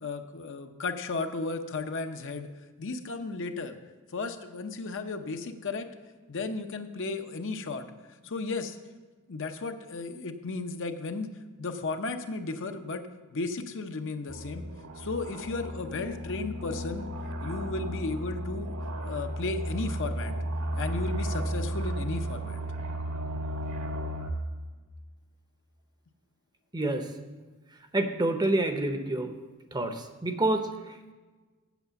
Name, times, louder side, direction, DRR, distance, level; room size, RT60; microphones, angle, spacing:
voice 1, 0.0-2.5 2.8-3.8 4.1-5.9 6.3-7.8 8.2-8.8 9.3-11.3 11.6-13.0 13.3-14.6 15.0-17.1 17.4-18.8 19.0-20.3 20.8-22.6, left 3 dB, 55° left, 7 dB, 0.7 m, -34 dB
sound 1, 14.3-24.3, right 1 dB, 80° right, 1.5 m, -34 dB
voice 2, 26.7-27.1 27.9-29.3 29.7-31.1, right 2 dB, 20° right, 7 dB, 0.7 m, -28 dB
8.1 x 7.8 x 6.9 m, 1.3 s
head